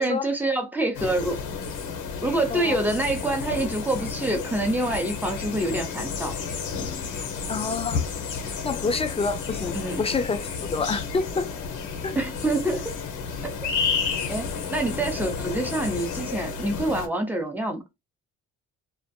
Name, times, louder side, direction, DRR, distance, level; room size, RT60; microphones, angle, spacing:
voice 1, 0.0-1.4 2.2-6.3 9.7-10.0 12.1-12.9 14.3-17.8, right 2 dB, 5° right, 0.8 m, -26 dB
sound 1, 0.9-17.1, left 6 dB, 85° left, 0.7 m, -31 dB
voice 2, 7.5-8.0 8.6-11.5 12.0-12.2, left 4 dB, 20° left, 0.3 m, -28 dB
2.5 x 2.2 x 2.6 m
cardioid pair, 90°, 30 cm